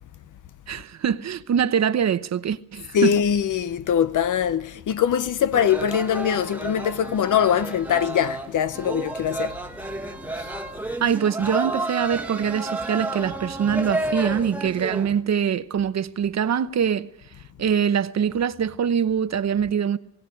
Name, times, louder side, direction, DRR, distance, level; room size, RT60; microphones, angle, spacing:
voice 1, 0.7-3.1 11.0-17.1 17.6-20.0, right 8 dB, 60° right, 0.9 m, -23 dB
voice 2, 2.9-9.6 10.3-10.5, left 8 dB, 75° left, 0.8 m, -22 dB
sound 1, 5.5-15.2, right 2 dB, 5° right, 1.3 m, -31 dB
20.0 x 17.5 x 9.9 m
wide cardioid pair, 165°, 31 cm